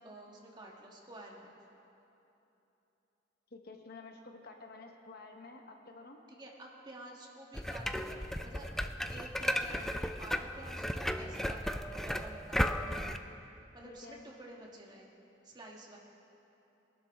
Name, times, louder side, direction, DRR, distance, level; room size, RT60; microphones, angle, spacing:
voice 1, 0.0-1.6 6.3-8.7 9.1-13.0 13.7-15.1 15.4-16.0, right 1 dB, 25° right, -1 dB, 1.5 m, -50 dB
voice 2, 3.5-6.2 13.8-14.2, left 3 dB, 55° left, 3 dB, 1.1 m, -50 dB
sound 1, 7.5-13.2, equal, ahead, 0.3 m, -35 dB
22.0 x 11.5 x 3.6 m, 3.0 s
head